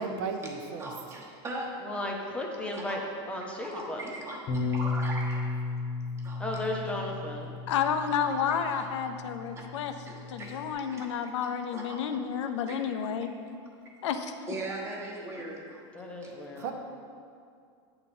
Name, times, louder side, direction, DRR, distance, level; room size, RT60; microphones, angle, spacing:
voice 1, 0.0-0.9 16.6-16.7, right 5 dB, 50° right, 5 dB, 0.7 m, -34 dB
voice 2, 0.8-2.0 2.7-3.0 3.6-5.5 6.2-6.4 8.0-8.8 9.5-9.6 10.1-11.1 11.4-12.0 12.7-12.8 14.5-16.3 16.6-16.7, right 1 dB, 20° right, -2 dB, 1.1 m, -40 dB
voice 3, 1.8-3.0 3.3-4.2 6.4-7.5 15.9-16.7, left 1 dB, 10° left, 0 dB, 0.7 m, -35 dB
Bass guitar, 4.5-10.7, left 3 dB, 40° left, 0.9 m, -34 dB
voice 4, 7.7-9.9 10.3-13.3 14.0-14.4, left 7 dB, 85° left, 7 dB, 0.6 m, -30 dB
8.6 x 4.0 x 5.9 m, 2.3 s
supercardioid pair, 160°, 15 cm